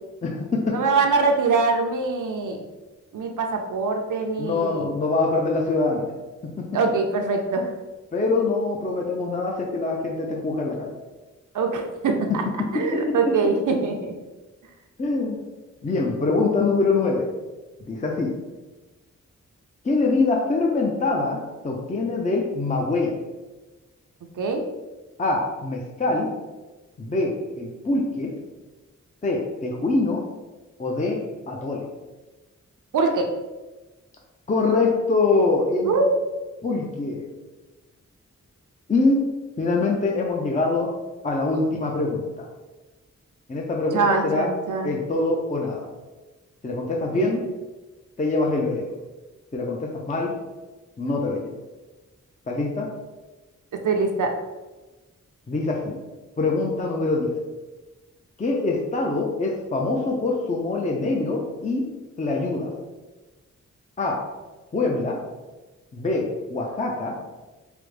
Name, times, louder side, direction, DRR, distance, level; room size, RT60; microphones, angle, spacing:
voice 1, 0.2-0.8 4.4-6.1 6.4-6.7 8.1-10.9 12.7-13.2 15.0-15.4 15.8-17.3 17.9-18.3 19.8-23.2 25.2-26.3 27.0-28.3 29.2-30.2 30.8-31.2 31.5-31.9 34.5-36.0 36.6-37.3 38.9-39.3 39.6-40.9 41.2-42.5 43.5-44.5 44.8-45.9 46.6-47.4 48.2-48.9 49.5-50.3 51.0-51.5 52.5-52.9 55.5-56.0 56.4-57.4 58.4-61.9 62.2-62.7 64.0-64.2 64.7-65.2 65.9-67.1, left 3 dB, 25° left, 0 dB, 0.5 m, -24 dB
voice 2, 0.7-2.6 3.1-4.9 6.7-7.7 11.5-12.4 12.7-14.1 24.4-24.6 32.9-33.3 35.8-36.3 43.9-44.9 47.1-47.3 53.8-54.3, right 4 dB, 80° right, 3 dB, 0.5 m, -23 dB
4.8 x 2.0 x 3.2 m, 1.2 s
wide cardioid pair, 80°, 30 cm